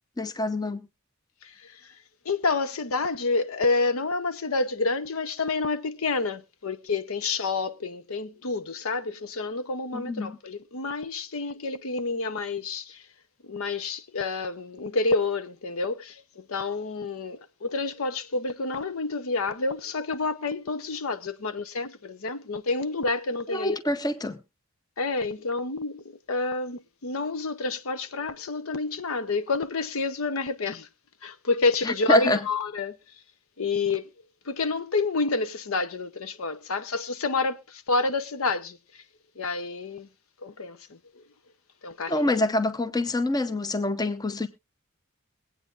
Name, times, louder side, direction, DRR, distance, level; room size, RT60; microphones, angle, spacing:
voice 1, 0.2-0.9 9.9-10.4 23.5-24.4 31.8-32.4 42.1-44.5, left 1 dB, 15° left, 0.7 m, -26 dB
voice 2, 1.4-1.8 2.2-13.0 13.4-23.8 25.0-30.9 31.2-33.0 33.6-34.1 34.5-39.0 39.4-40.1 40.4-41.2 41.8-42.3, left 3 dB, 70° left, 0.8 m, -29 dB
22.5 x 8.7 x 2.5 m
head